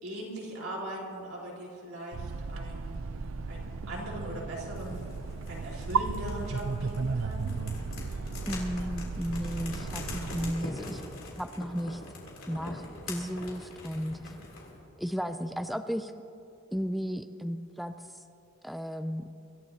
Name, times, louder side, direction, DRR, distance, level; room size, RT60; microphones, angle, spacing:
voice 1, 0.0-5.1 5.5-7.5 14.1-14.4, right 1 dB, 90° right, -4 dB, 4.1 m, -40 dB
sound 1, 2.1-10.5, right 4 dB, 65° right, 0.5 m, -35 dB
sound 2, 4.7-14.8, left 2 dB, 70° left, 3.1 m, -44 dB
voice 2, 8.5-11.0 11.4-12.0 12.5-14.3 15.0-16.1 16.7-17.9 18.6-19.3, equal, ahead, 8 dB, 0.3 m, -34 dB
25.5 x 13.5 x 2.8 m, 2.7 s
head